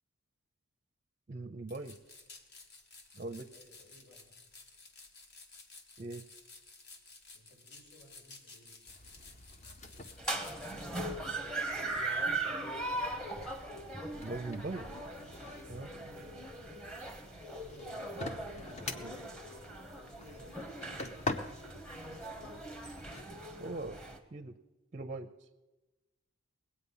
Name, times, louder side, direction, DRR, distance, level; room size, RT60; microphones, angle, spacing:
voice 1, 1.3-2.0 3.2-3.5 6.0-6.2 14.2-14.8 15.7-15.9 18.9-19.1 23.6-24.0 24.3-24.5 24.9-25.3, right 2 dB, 30° right, 7 dB, 0.5 m, -40 dB
sound 1, 1.7-10.9, left 3 dB, 50° left, 1.1 m, -55 dB
voice 2, 3.5-4.4 7.3-8.8 14.7-15.4 15.8-16.4 17.3-18.2 18.5-19.5 20.0-20.6 21.1-22.7, equal, 80° left, -3 dB, 6.3 m, -59 dB
sound 2, 8.9-23.2, left 2 dB, 30° left, 0.7 m, -46 dB
sound 3, 10.2-24.2, right 2 dB, 5° left, 0.9 m, -40 dB
20.0 x 8.5 x 5.6 m, 1.1 s
head